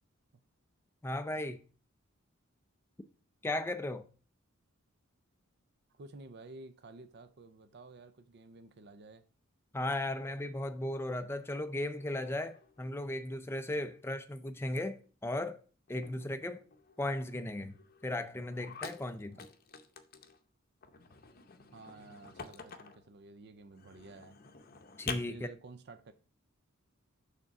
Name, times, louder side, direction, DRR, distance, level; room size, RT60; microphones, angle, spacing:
voice 1, 1.0-1.6 3.4-4.1 9.7-15.6 15.9-16.6 17.0-17.8 18.0-19.5 25.0-25.5, left 1 dB, 10° left, 0.4 m, -36 dB
voice 2, 5.9-9.2 21.7-24.4 25.3-26.1, right 3 dB, 50° right, 0.5 m, -52 dB
sound 1, 10.1-11.6 11.8-13.3 13.6-14.1 14.4-14.7 15.0-15.1 15.4-15.5 15.9-20.4 20.8-23.1 23.7-25.2, left 5 dB, 45° left, 0.7 m, -49 dB
6.4 x 3.7 x 5.8 m
head